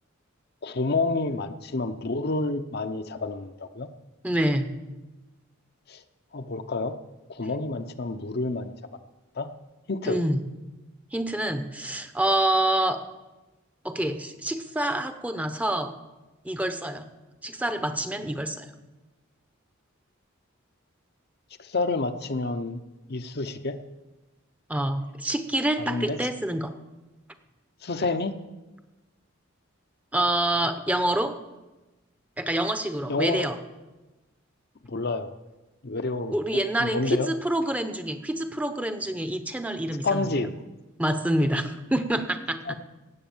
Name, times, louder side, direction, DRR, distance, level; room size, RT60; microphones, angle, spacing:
voice 1, 0.6-3.9 5.9-6.0 6.3-7.0 7.3-8.7 9.4-9.5 9.9-10.2 21.6-22.8 23.1-23.8 25.8-26.2 27.8-28.3 33.1-33.5 34.9-35.3 35.8-36.4 36.8-37.3 40.0-40.5 42.7-42.8, left 3 dB, 50° left, 8 dB, 0.7 m, -29 dB
voice 2, 4.2-4.7 10.0-10.4 11.1-13.0 13.8-15.9 16.4-17.1 17.4-18.7 24.7-26.7 30.1-31.4 32.4-33.6 36.3-40.5 41.0-42.6, right 1 dB, 5° right, 8 dB, 0.8 m, -27 dB
17.5 x 8.4 x 7.2 m, 1.1 s
head